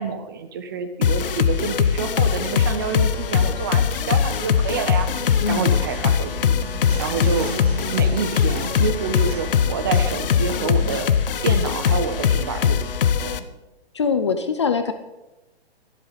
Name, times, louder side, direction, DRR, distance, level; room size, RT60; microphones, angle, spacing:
voice 1, 0.0-5.1 5.5-6.5 7.0-7.5 7.9-11.1 11.4-12.9 13.2-13.5, right 6 dB, 20° right, 9 dB, 0.7 m, -28 dB
sound 1, 1.0-13.4, left 7 dB, 60° left, 0.9 m, -21 dB
sound 2, 3.9-11.0, right 4 dB, 75° right, 4.4 m, -36 dB
voice 2, 5.4-5.8 13.9-14.9, left 5 dB, 30° left, 9 dB, 0.5 m, -22 dB
23.5 x 8.0 x 4.1 m, 1.0 s
hypercardioid pair, 170°, 31 cm